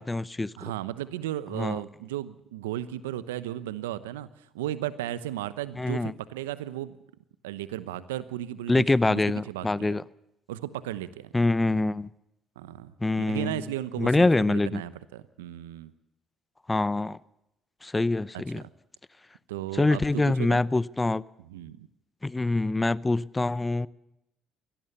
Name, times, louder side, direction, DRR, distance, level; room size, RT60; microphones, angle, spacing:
voice 1, 0.0-0.5 1.5-1.8 5.8-6.1 8.7-10.0 11.3-12.1 13.0-13.6 14.0-14.8 16.7-17.2 17.8-18.6 19.7-21.2 22.2-23.9, left 2 dB, 20° left, 0.8 m, -25 dB
voice 2, 0.6-4.3 4.5-7.0 7.4-9.2 9.5-10.0 10.5-11.3 12.6-15.9 18.3-18.6 19.5-20.6 21.4-21.9, right 13 dB, 85° right, 0.9 m, -35 dB
23.0 x 17.5 x 6.9 m
hypercardioid pair, 50°, 0 cm